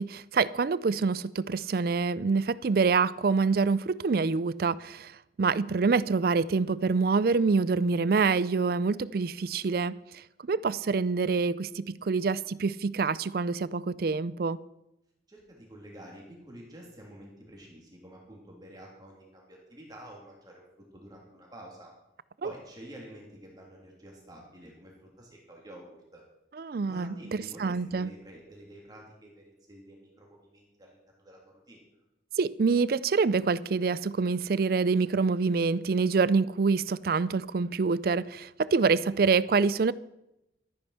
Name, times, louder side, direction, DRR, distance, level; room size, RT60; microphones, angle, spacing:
voice 1, 0.0-14.6 22.4-22.5 26.6-28.1 32.4-39.9, right 4 dB, 50° right, 0.4 m, -26 dB
voice 2, 15.3-20.6 20.9-21.9 22.4-26.2 26.8-31.8, right 1 dB, 20° right, 3.0 m, -49 dB
13.0 x 9.6 x 5.7 m
head